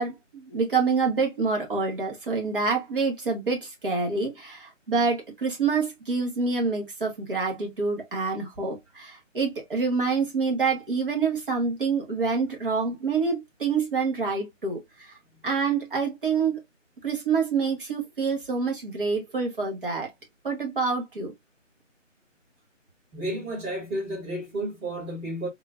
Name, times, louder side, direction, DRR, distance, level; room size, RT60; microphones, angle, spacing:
voice 1, 0.0-15.1 15.4-16.6 17.0-20.1 20.4-21.3, right 4 dB, 45° right, 1.2 m, -27 dB
voice 2, 23.1-25.5, right 1 dB, 20° right, 2.1 m, -32 dB
3.6 x 2.4 x 2.4 m
figure-of-eight pair, 165°, 39 cm